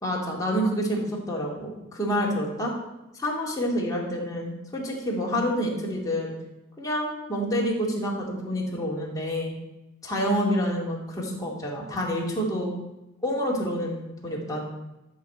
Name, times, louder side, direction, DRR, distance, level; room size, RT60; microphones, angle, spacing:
voice 1, 0.0-2.7 3.1-6.3 6.8-9.5 10.0-12.8 13.2-14.6, equal, 15° left, -3 dB, 2.5 m, -28 dB
12.5 x 5.1 x 8.0 m, 0.98 s
head